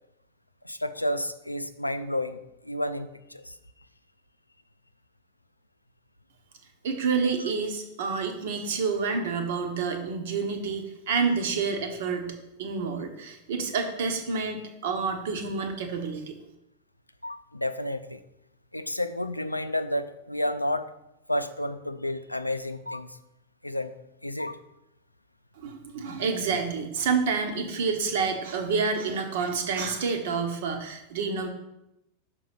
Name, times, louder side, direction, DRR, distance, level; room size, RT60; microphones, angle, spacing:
voice 1, 0.6-3.5 17.2-18.2 18.7-20.9 21.3-23.2 23.6-23.9 24.2-24.6, left 1 dB, 85° left, 10 dB, 0.4 m, -31 dB
voice 2, 6.8-16.3 25.6-31.5, right 5 dB, 55° right, 5 dB, 1.1 m, -28 dB
6.0 x 4.6 x 5.8 m, 0.87 s
figure-of-eight pair, 90°, 0 cm